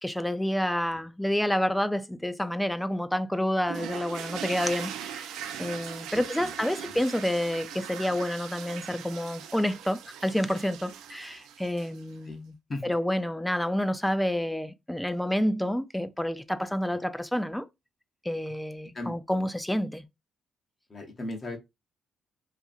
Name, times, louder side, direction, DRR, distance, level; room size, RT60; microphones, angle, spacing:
voice 1, 0.0-5.3 5.6-12.5 12.8-17.6 18.2-20.0, left 1 dB, 5° left, 0.3 m, -29 dB
sound 1, 3.7-12.1, right 9 dB, 90° right, 0.3 m, -40 dB
voice 2, 6.1-6.5 6.9-7.0 12.3-12.4 12.7-12.9 16.9-17.0 18.9-19.1 20.9-21.6, left 2 dB, 35° left, 0.7 m, -37 dB
2.8 x 2.5 x 2.4 m
cardioid pair, 90°, 0 cm